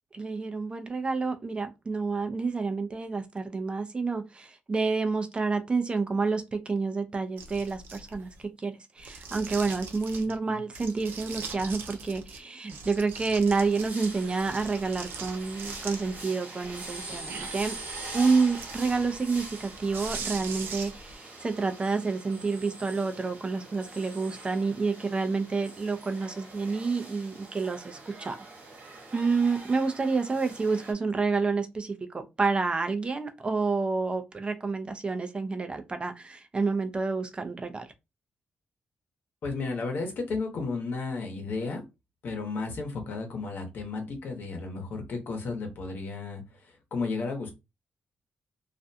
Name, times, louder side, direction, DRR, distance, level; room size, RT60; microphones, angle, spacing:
voice 1, 0.1-17.8 18.1-28.4 29.1-37.9, right 4 dB, 30° right, 0.4 m, -29 dB
sound 1, 7.4-8.4 9.0-10.4 10.7-12.4 12.7-16.2 16.6-21.1, right 4 dB, 80° right, 0.5 m, -41 dB
sound 2, 13.5-30.9, right 2 dB, 55° right, 1.1 m, -43 dB
voice 2, 39.4-41.8 42.2-46.4 46.9-47.5, left 3 dB, 65° left, 0.9 m, -33 dB
2.4 x 2.2 x 2.6 m
cardioid pair, 90°, 4 cm